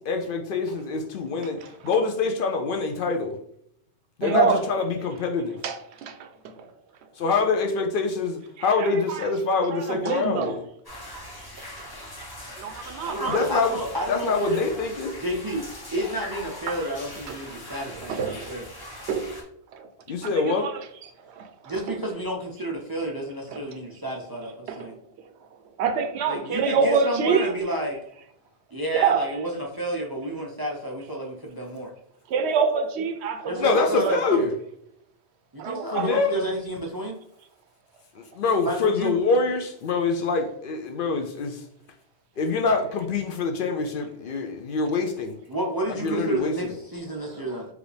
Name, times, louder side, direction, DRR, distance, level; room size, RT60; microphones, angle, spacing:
voice 1, 0.1-3.4 4.2-5.6 7.2-10.6 13.3-13.8 14.1-15.2 20.1-20.7 33.6-34.5 35.9-36.4 38.2-41.6 42.4-45.4 46.0-46.7, left 4 dB, 60° left, 4 dB, 0.6 m, -25 dB
voice 2, 4.2-4.6 5.6-5.8 6.0-6.3 6.6-6.7 8.8-9.2 9.9-10.5 12.6-13.4 16.7-16.8 17.5-17.6 18.1-18.6 19.1-19.3 19.7-19.9 20.3-20.7 21.3-21.5 21.9-22.0 23.5-23.6 24.7-24.8 25.8-27.5 28.9-29.3 32.3-33.7 34.0-34.2 35.6-36.2 47.3-47.4, right 5 dB, 75° right, 8 dB, 0.8 m, -25 dB
sound 1, 10.8-19.4, left 1 dB, 20° left, 0.8 m, -41 dB
voice 3, 13.0-14.6 15.2-18.7 21.6-24.9 26.3-28.0 28.7-31.9 33.4-34.4 35.5-37.2 38.6-39.2 45.5-47.7, right 1 dB, 35° right, 0 dB, 0.3 m, -30 dB
4.7 x 2.5 x 3.3 m, 0.71 s
omnidirectional pair, 1.1 m